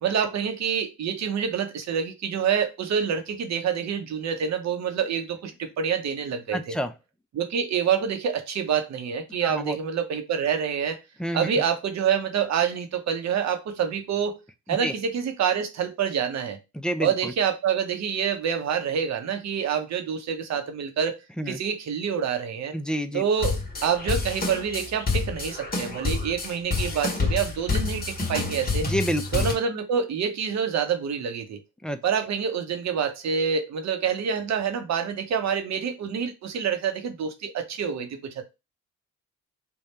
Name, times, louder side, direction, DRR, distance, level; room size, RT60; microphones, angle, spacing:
voice 1, 0.0-6.8 7.3-11.0 11.3-14.4 14.7-16.6 17.0-21.2 21.5-22.8 23.1-28.9 29.3-31.6 32.0-38.5, right 7 dB, 65° right, 0.8 m, -27 dB
voice 2, 6.5-6.9 9.4-9.8 11.2-11.5 14.8-14.9 16.7-17.3 21.4-21.6 22.7-23.2 28.8-29.4 31.8-32.0, equal, 5° left, 0.4 m, -28 dB
sound 1, 23.4-29.5, left 3 dB, 30° left, 1.2 m, -28 dB
3.5 x 2.3 x 4.1 m
cardioid pair, 90°, 30 cm